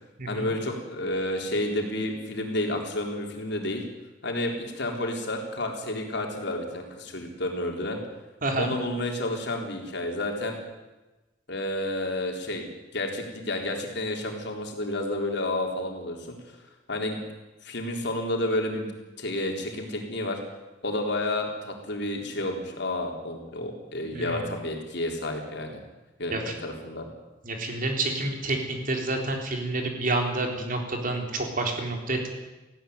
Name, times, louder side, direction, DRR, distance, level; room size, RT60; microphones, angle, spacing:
voice 1, 0.3-3.8 4.2-8.0 8.6-10.6 11.5-16.4 16.9-17.2 17.6-18.9 19.2-20.4 20.8-25.8 26.2-27.1, left 1 dB, 60° left, 2 dB, 3.9 m, -30 dB
voice 2, 24.1-24.5 26.3-26.4 27.4-32.3, right 2 dB, 45° right, 3 dB, 3.8 m, -29 dB
18.5 x 16.0 x 9.6 m, 1.1 s
head